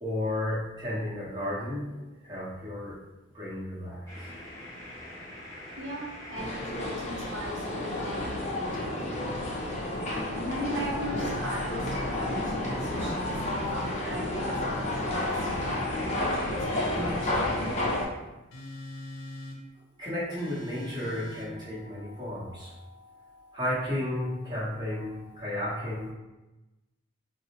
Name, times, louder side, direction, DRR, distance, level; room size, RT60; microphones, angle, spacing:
voice 1, 0.0-3.0 3.3-4.3 20.0-26.1, left 1 dB, 20° right, -8 dB, 0.9 m, -33 dB
sound 1, 4.1-7.2 7.6-14.3 15.0-18.0, left 1 dB, 15° left, 0.9 m, -41 dB
voice 2, 5.8-9.4 10.1-15.7 16.1-17.4, right 1 dB, 55° right, -5 dB, 0.6 m, -38 dB
sound 2, 6.3-18.0, left 1 dB, 30° left, 0.5 m, -31 dB
sound 3, 12.9-13.9 14.7-15.9 16.6-17.8 18.5-19.6 20.4-21.5, left 1 dB, 80° left, 0.6 m, -43 dB
3.9 x 2.0 x 2.8 m, 1.0 s
head